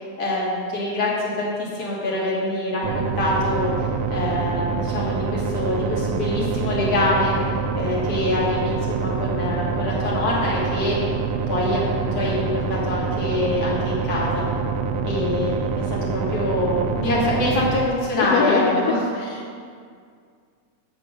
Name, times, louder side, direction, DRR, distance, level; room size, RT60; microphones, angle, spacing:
voice 1, 0.2-3.7 4.1-7.4 7.7-11.0 11.5-14.4 15.0-19.0, left 1 dB, 55° left, -5 dB, 2.7 m, -24 dB
sound 1, 2.8-17.9, right 5 dB, 80° right, 1.7 m, -26 dB
voice 2, 18.2-18.8 19.2-19.5, left 7 dB, 75° left, 2 dB, 1.6 m, -24 dB
9.4 x 7.3 x 5.1 m, 2.2 s
omnidirectional pair, 3.4 m